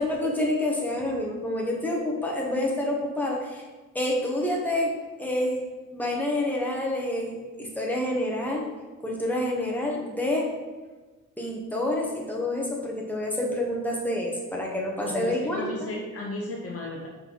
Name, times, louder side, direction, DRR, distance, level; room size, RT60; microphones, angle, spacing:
voice 1, 0.0-3.6 3.9-4.9 5.2-5.6 5.9-8.6 9.0-10.5 11.4-15.9, left 1 dB, 5° left, -2 dB, 0.9 m, -28 dB
voice 2, 15.0-17.1, left 1 dB, 45° left, -2 dB, 0.7 m, -35 dB
5.4 x 3.9 x 4.5 m, 1.3 s
wide cardioid pair, 165°, 34 cm